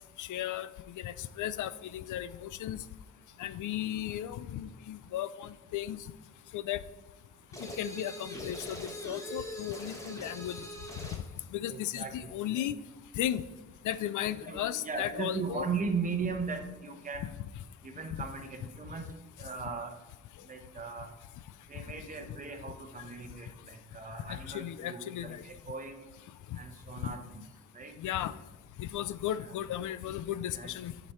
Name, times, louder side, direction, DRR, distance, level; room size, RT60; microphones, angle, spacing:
voice 1, 0.2-2.8 3.4-6.0 6.5-6.8 7.6-10.6 11.5-12.8 13.1-13.4 13.8-15.7 24.3-25.4 26.5-26.6 28.0-28.3 28.8-30.9, left 12 dB, 75° left, 16 dB, 0.5 m, -35 dB
sound 1, 7.5-11.3, equal, 10° left, 1.1 m, -42 dB
voice 2, 11.7-12.6 14.2-17.3 17.8-19.0 19.4-19.9 20.5-21.1 21.7-26.0 26.6-27.2 27.7-27.9 29.3-29.5 30.5-30.7, right 5 dB, 25° right, 5 dB, 1.0 m, -38 dB
9.3 x 5.2 x 4.4 m, 1.1 s
cardioid pair, 160°, 31 cm